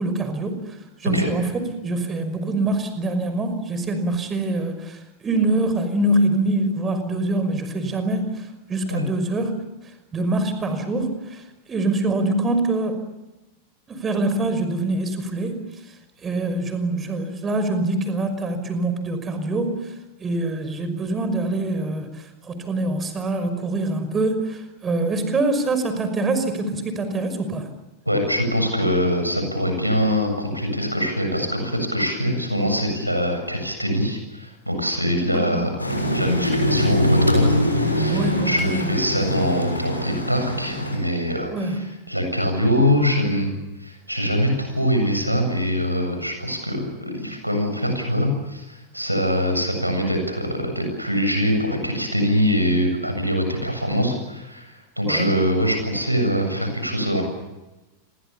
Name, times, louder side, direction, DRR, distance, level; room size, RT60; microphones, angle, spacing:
voice 1, 0.0-9.6 10.1-11.4 11.7-13.0 13.9-15.7 16.2-19.9 20.2-27.7 35.3-35.6 38.1-38.9 41.5-41.8 55.1-55.3, right 2 dB, 20° right, 9 dB, 5.7 m, -24 dB
voice 2, 28.1-35.7 36.1-43.5 43.8-57.2, equal, 90° right, 5 dB, 7.5 m, -23 dB
sound 1, 35.8-41.0, left 1 dB, 85° left, 6.8 m, -23 dB
30.0 x 23.5 x 7.1 m, 1.1 s
figure-of-eight pair, 90°, 0 cm